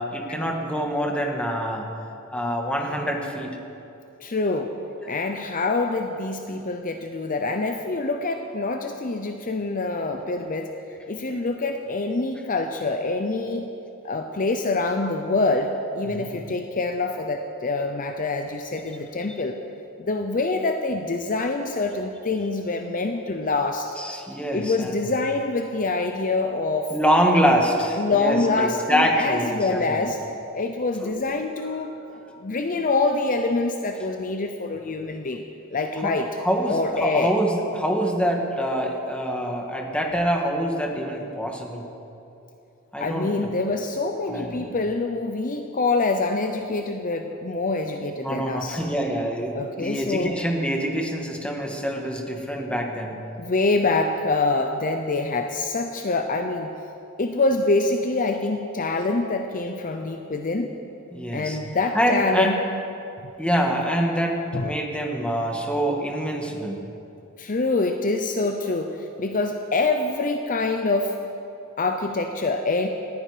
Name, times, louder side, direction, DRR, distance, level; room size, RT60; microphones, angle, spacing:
voice 1, 0.0-1.9 2.3-3.5 16.0-16.4 24.0-25.0 26.9-30.1 31.0-31.2 36.0-41.8 42.9-43.5 44.3-44.6 48.2-53.2 61.1-61.6 61.9-62.5 63.4-66.8, equal, 5° left, 1 dB, 1.7 m, -25 dB
voice 2, 4.2-4.7 5.1-10.7 11.1-13.7 14.0-19.6 20.0-23.9 24.5-26.9 28.0-30.2 30.5-31.9 32.4-35.4 35.7-36.3 36.7-37.3 43.0-48.8 49.5-50.4 53.4-56.7 57.2-60.7 61.3-62.6 64.5-64.7 67.4-71.1 71.8-72.9, left 3 dB, 40° left, 5 dB, 0.7 m, -25 dB
19.5 x 14.5 x 5.1 m, 2.8 s
head